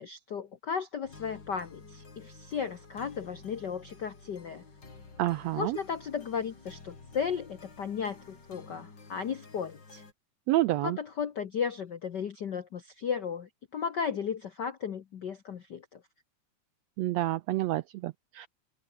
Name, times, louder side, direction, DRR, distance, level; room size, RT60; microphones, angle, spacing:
voice 1, 0.0-4.6 5.5-10.0 10.7-16.0, left 7 dB, 70° left, 1.0 m, -35 dB
sound 1, 1.0-10.1, left 4 dB, 35° left, 4.3 m, -51 dB
voice 2, 5.2-5.8 10.5-11.0 17.0-18.5, right 16 dB, 85° right, 1.5 m, -29 dB
open air
omnidirectional pair, 3.6 m